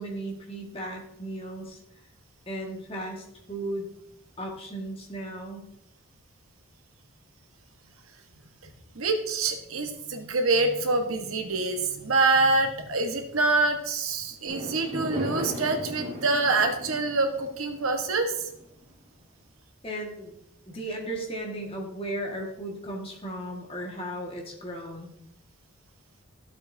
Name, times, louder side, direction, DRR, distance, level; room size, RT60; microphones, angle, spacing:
voice 1, 0.0-1.8 2.5-3.9 4.4-5.7 19.8-20.4 20.7-25.1, right 1 dB, 25° left, 0 dB, 1.7 m, -35 dB
voice 2, 8.9-18.5, right 3 dB, 80° right, 5 dB, 1.3 m, -26 dB
Fireworks, 14.5-18.9, equal, 35° right, 4.0 m, -36 dB
12.5 x 7.7 x 2.7 m, 0.77 s
head